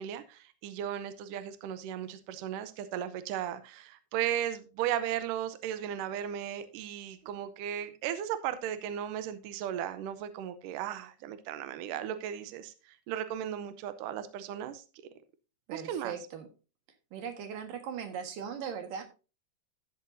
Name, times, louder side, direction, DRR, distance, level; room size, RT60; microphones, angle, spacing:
voice 1, 0.0-14.8 15.7-16.2, right 10 dB, 80° right, 1.9 m, -36 dB
voice 2, 15.7-16.5 17.1-19.0, right 7 dB, 60° right, 2.9 m, -39 dB
12.0 x 8.9 x 2.6 m
omnidirectional pair, 4.7 m